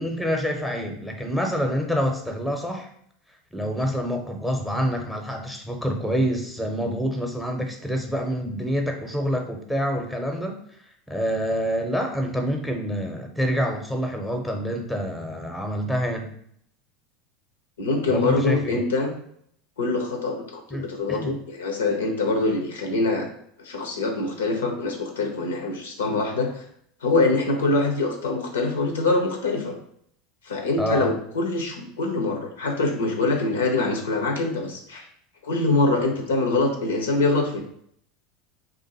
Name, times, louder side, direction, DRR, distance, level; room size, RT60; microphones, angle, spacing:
voice 1, 0.0-2.9 3.5-10.5 11.1-16.3 18.1-18.8 20.7-21.4 30.8-31.1, equal, 5° left, 3 dB, 0.7 m, -27 dB
voice 2, 17.8-19.1 19.8-23.3 23.6-26.6 27.0-29.7 30.4-35.1 35.4-37.6, left 3 dB, 80° left, 3 dB, 0.6 m, -24 dB
2.5 x 2.4 x 4.1 m, 0.67 s
hypercardioid pair, 85°, 0 cm